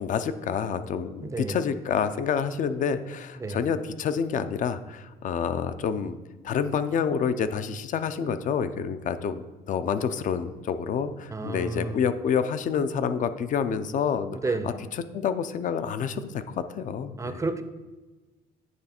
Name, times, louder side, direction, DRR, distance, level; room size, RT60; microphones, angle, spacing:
voice 1, 0.0-6.2 6.4-14.4 14.6-14.7 15.1-17.4, left 7 dB, 50° left, 11 dB, 0.5 m, -28 dB
voice 2, 1.2-1.6 3.4-3.7 11.3-12.0 14.4-14.8 17.2-17.6, right 3 dB, 20° right, 10 dB, 0.5 m, -31 dB
9.2 x 3.2 x 4.3 m, 1.2 s
cardioid pair, 110°, 17 cm